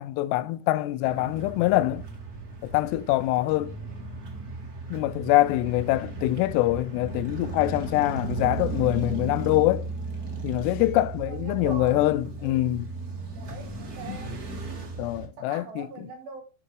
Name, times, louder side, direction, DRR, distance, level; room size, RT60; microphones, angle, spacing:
voice 1, 0.0-2.0 2.6-3.7 4.9-9.9 10.4-12.9 14.1-14.2 15.0-15.9, left 16 dB, 85° left, 2.7 m, -24 dB
sound 1, 1.0-15.3, right 3 dB, 45° right, 1.2 m, -36 dB
voice 2, 11.2-12.1 12.4-12.8 13.4-14.4 15.4-16.4, right 4 dB, 65° right, 3.5 m, -41 dB
10.0 x 6.7 x 3.4 m
omnidirectional pair, 4.8 m